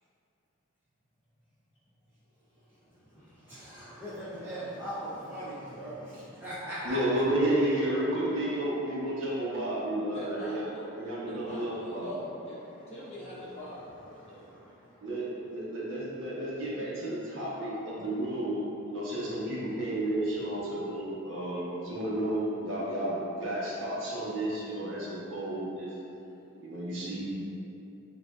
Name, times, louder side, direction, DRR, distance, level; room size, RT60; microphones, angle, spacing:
voice 1, 2.5-7.0 12.5-12.9 13.5-13.6 14.2-15.1, equal, 10° right, -12 dB, 0.6 m, -41 dB
voice 2, 3.1-3.4 10.1-12.2 12.5-12.6 12.9-14.8, equal, 30° left, -9 dB, 1.0 m, -45 dB
voice 3, 6.8-10.6 10.9-12.2 15.0-25.9 26.6-27.2, right 1 dB, 65° right, -7 dB, 1.0 m, -32 dB
7.2 x 2.6 x 2.4 m, 2.8 s
head